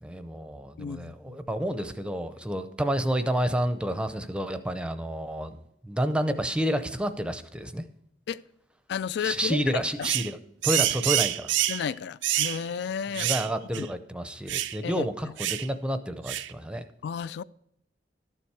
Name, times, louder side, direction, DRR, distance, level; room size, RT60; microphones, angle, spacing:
voice 1, 0.0-5.6 5.8-7.8 9.2-10.4 10.6-11.5 13.1-16.8, equal, 5° right, 0.6 m, -29 dB
voice 2, 0.8-1.4 8.3-8.4 8.9-10.1 11.7-13.3 13.8-13.9 14.8-15.1 17.0-17.4, left 7 dB, 65° left, 0.3 m, -32 dB
sound 1, 10.0-10.3 10.6-11.8 12.2-12.6 13.2-13.5 13.7-13.9 14.5-14.8 15.4-15.7 16.3-16.5, right 13 dB, 90° right, 0.5 m, -27 dB
12.5 x 7.1 x 4.7 m
head